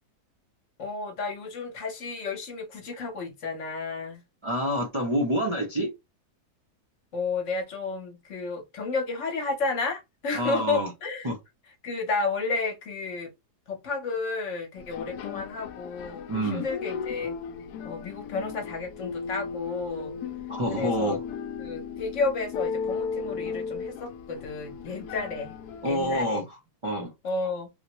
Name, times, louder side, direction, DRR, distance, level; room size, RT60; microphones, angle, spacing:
voice 1, 0.8-4.2 7.1-11.3 11.8-13.3 13.7-17.3 17.8-20.2 20.7-21.2 21.6-25.6 25.8-26.5 27.2-27.7, left 3 dB, 55° left, 1.2 m, -32 dB
voice 2, 4.4-5.9 10.3-10.9 11.2-11.4 16.3-16.6 20.5-21.2 25.8-26.5 26.8-27.1, equal, 35° right, 0.4 m, -27 dB
sound 1, 14.8-26.2, left 6 dB, 75° left, 1.1 m, -36 dB
3.6 x 2.1 x 2.9 m
omnidirectional pair, 1.7 m